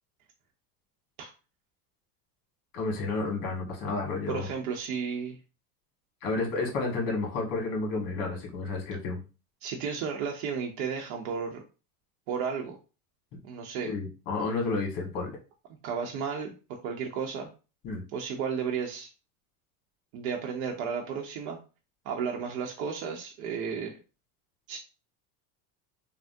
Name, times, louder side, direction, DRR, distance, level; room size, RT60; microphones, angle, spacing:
voice 1, 2.7-4.5 6.2-9.2 13.9-15.4 17.8-18.0, left 3 dB, 45° left, 1 dB, 1.4 m, -31 dB
voice 2, 4.3-5.4 9.6-11.6 12.3-12.8 13.4-13.9 15.8-17.5 18.1-19.1 20.1-21.6 22.0-23.9 24.7-24.8, right 6 dB, 70° right, 1 dB, 0.7 m, -33 dB
3.4 x 2.1 x 2.6 m, 0.32 s
supercardioid pair, 105°, 45 cm